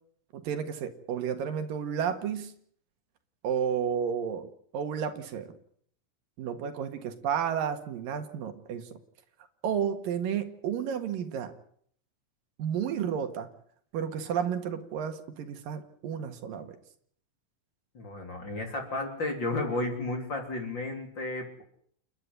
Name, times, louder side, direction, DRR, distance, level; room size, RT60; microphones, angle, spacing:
voice 1, 0.3-2.5 3.4-4.5 4.7-5.5 6.4-9.0 9.6-11.5 12.6-13.5 13.9-16.8, right 8 dB, 75° right, 8 dB, 3.4 m, -32 dB
voice 2, 17.9-21.6, left 2 dB, 30° left, 3 dB, 3.9 m, -33 dB
29.5 x 11.0 x 9.9 m, 0.65 s
omnidirectional pair, 4.0 m